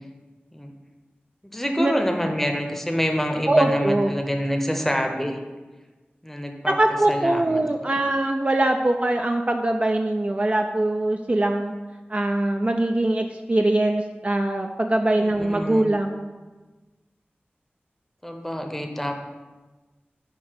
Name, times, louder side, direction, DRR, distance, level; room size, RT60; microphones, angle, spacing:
voice 1, 1.4-5.4 6.2-6.8 7.1-8.0 15.2-15.9 18.2-19.1, equal, 5° left, 3 dB, 0.7 m, -27 dB
voice 2, 3.5-4.1 6.7-11.7 12.1-16.3, right 1 dB, 35° right, 4 dB, 0.3 m, -22 dB
6.6 x 2.8 x 5.6 m, 1.2 s
wide cardioid pair, 60°, 4 cm